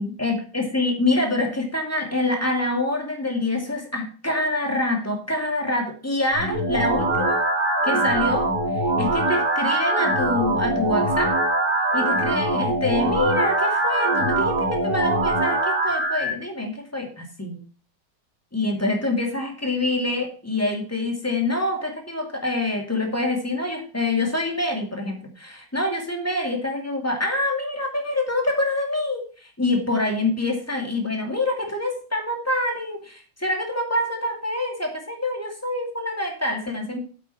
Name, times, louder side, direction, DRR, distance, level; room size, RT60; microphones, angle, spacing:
voice 1, 0.0-7.4 7.8-8.5 9.0-11.4 11.9-17.6 18.5-37.0, left 2 dB, 5° left, 2 dB, 2.2 m, -26 dB
sound 1, 6.3-16.3, right 2 dB, 55° right, 3.3 m, -22 dB
8.3 x 8.2 x 5.7 m, 0.38 s
omnidirectional pair, 2.3 m